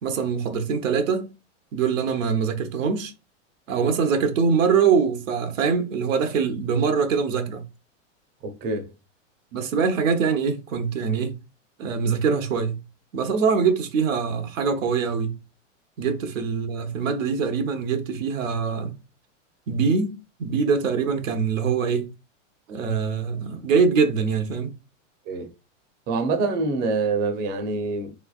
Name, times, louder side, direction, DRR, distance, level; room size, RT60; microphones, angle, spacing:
voice 1, 0.0-1.3 1.7-3.1 3.7-7.6 9.5-11.4 11.8-12.8 13.1-15.4 16.0-18.9 19.7-22.1 22.7-24.7, right 5 dB, 90° right, 0.9 m, -23 dB
voice 2, 8.4-8.9 25.3-25.5 26.1-28.1, right 3 dB, 25° right, 0.6 m, -25 dB
3.4 x 3.2 x 2.3 m
supercardioid pair, 135°, 38 cm